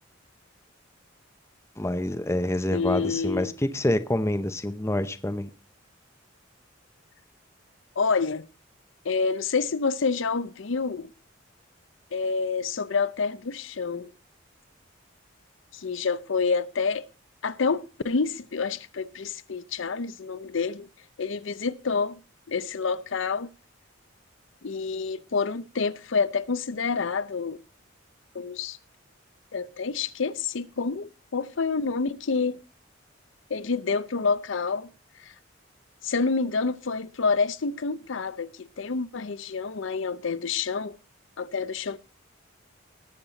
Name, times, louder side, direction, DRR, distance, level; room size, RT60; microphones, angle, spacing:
voice 1, 1.8-5.5, left 1 dB, 15° left, 0.6 m, -27 dB
voice 2, 2.7-3.5 8.0-8.4 9.0-11.1 12.1-14.1 15.7-17.0 17.4-20.9 21.2-22.2 22.5-23.5 24.6-27.6 28.3-28.8 29.5-32.6 33.5-34.9 35.2-35.3 36.0-41.0 41.4-42.0, left 4 dB, 70° left, 0.6 m, -28 dB
19.0 x 7.4 x 4.0 m
head